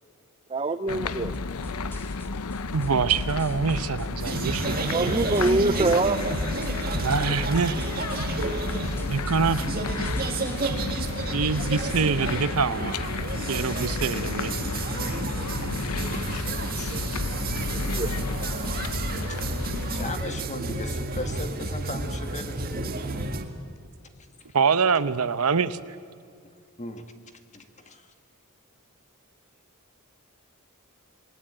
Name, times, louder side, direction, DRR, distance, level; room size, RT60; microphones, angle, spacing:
voice 1, 0.5-1.3 4.8-6.2 16.9-17.4 17.7-18.1, right 2 dB, 25° right, 10 dB, 0.6 m, -25 dB
sound 1, 0.9-20.2, left 4 dB, 90° left, 0.7 m, -32 dB
sound 2, 1.3-10.7, equal, 10° left, 1.8 m, -40 dB
voice 2, 2.7-5.1 7.0-7.8 9.1-9.6 11.3-13.0 13.5-14.5 20.9-21.0 24.5-25.8, right 5 dB, 85° right, 14 dB, 0.9 m, -25 dB
sound 3, 4.2-23.4, right 2 dB, 45° right, 1.8 m, -31 dB
voice 3, 16.4-17.0 19.3-19.4 19.9-23.1 26.8-27.0 27.5-28.1, left 2 dB, 30° left, 6 dB, 1.9 m, -37 dB
27.5 x 21.0 x 8.8 m, 2.3 s
head